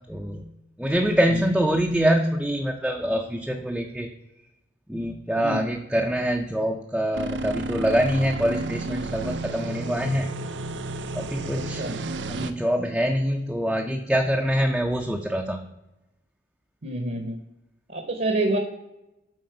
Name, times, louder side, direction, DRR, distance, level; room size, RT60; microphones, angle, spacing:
voice 1, 0.1-0.4 0.8-4.1 4.9-10.3 11.1-11.8 12.3-15.6, equal, 5° right, 2 dB, 0.4 m, -25 dB
sound 1, 7.1-12.5, right 2 dB, 80° right, 0.5 m, -32 dB
voice 2, 11.5-12.0 16.8-17.4 17.9-18.6, right 2 dB, 55° right, 5 dB, 0.8 m, -27 dB
7.8 x 4.2 x 4.6 m, 0.93 s
head